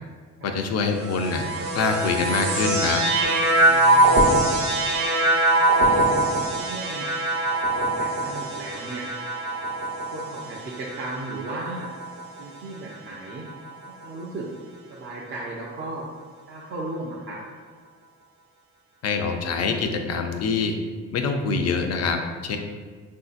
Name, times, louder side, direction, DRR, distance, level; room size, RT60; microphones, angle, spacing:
voice 1, 0.4-1.4 1.7-3.0 19.0-20.7 21.1-22.6, left 4 dB, 55° left, 5 dB, 0.5 m, -25 dB
sound 1, 0.9-12.4 13.2-13.9, right 1 dB, 65° right, 0.8 m, -23 dB
voice 2, 3.6-4.6 5.6-7.1 7.4-9.3 10.1-11.9 12.4-13.4 14.0-14.5 14.9-16.1 16.5-17.4, right 2 dB, 40° right, -4 dB, 0.5 m, -36 dB
3.7 x 2.7 x 2.4 m, 1.6 s
cardioid pair, 90°, 30 cm